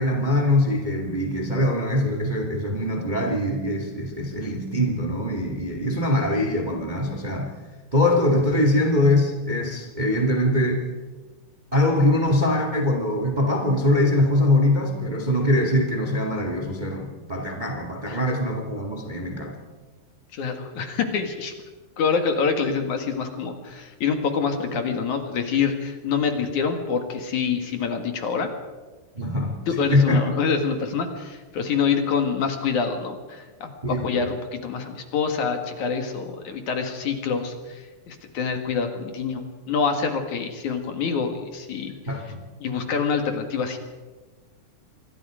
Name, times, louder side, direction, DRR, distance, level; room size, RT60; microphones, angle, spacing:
voice 1, 0.0-7.5 7.9-10.8 11.7-19.6 29.1-29.6 29.9-30.2 33.8-34.2 42.1-42.4, left 1 dB, 15° right, 3 dB, 1.9 m, -22 dB
voice 2, 20.3-21.5 22.0-28.5 29.7-41.9 42.6-43.8, left 5 dB, 60° left, 5 dB, 3.1 m, -26 dB
27.0 x 22.5 x 5.0 m, 1.3 s
omnidirectional pair, 4.1 m